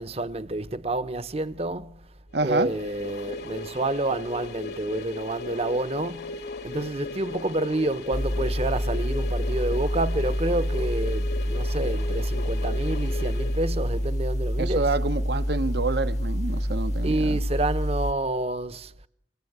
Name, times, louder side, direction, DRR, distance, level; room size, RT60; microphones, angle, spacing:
voice 1, 0.0-2.0 2.4-14.9 17.0-18.9, right 2 dB, 35° right, 1.0 m, -29 dB
voice 2, 2.3-2.7 14.6-17.4, right 3 dB, 65° right, 1.0 m, -27 dB
sound 1, 2.4-14.2, left 3 dB, 60° left, 1.6 m, -37 dB
sound 2, 8.1-18.1, equal, 40° left, 1.0 m, -27 dB
27.0 x 25.0 x 8.1 m
head